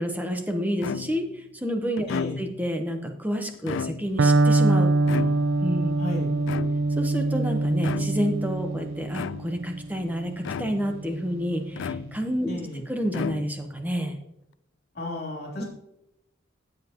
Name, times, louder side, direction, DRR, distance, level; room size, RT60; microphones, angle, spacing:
voice 1, 0.0-2.1 2.4-4.9 5.6-6.0 6.3-6.5 7.0-10.3 10.6-12.6 12.9-14.2 15.6-15.7, equal, 10° right, 4 dB, 1.0 m, -29 dB
sound 1, 0.8-1.4 2.0-2.7 3.5-4.3 5.1-5.8 6.5-7.1 7.8-8.4 9.1-9.7 10.4-11.0 11.8-12.5 13.1-13.8, left 6 dB, 70° left, 0.3 m, -34 dB
voice 2, 2.1-2.4 6.0-6.3 12.5-12.8 14.9-15.7, left 1 dB, 50° left, -2 dB, 3.3 m, -33 dB
Electric guitar, 4.2-12.0, right 2 dB, 80° right, 0.4 m, -25 dB
14.0 x 7.6 x 3.0 m, 0.84 s
head